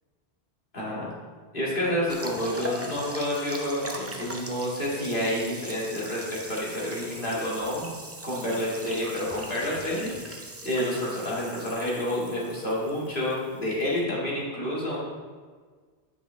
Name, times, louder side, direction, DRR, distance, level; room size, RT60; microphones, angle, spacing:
voice 1, 0.7-1.1 1.5-7.9 8.2-15.0, left 1 dB, 50° left, -6 dB, 2.3 m, -29 dB
sound 1, 2.1-14.0, right 1 dB, 15° right, 0.5 m, -41 dB
9.0 x 6.1 x 3.4 m, 1.5 s
omnidirectional pair, 1.1 m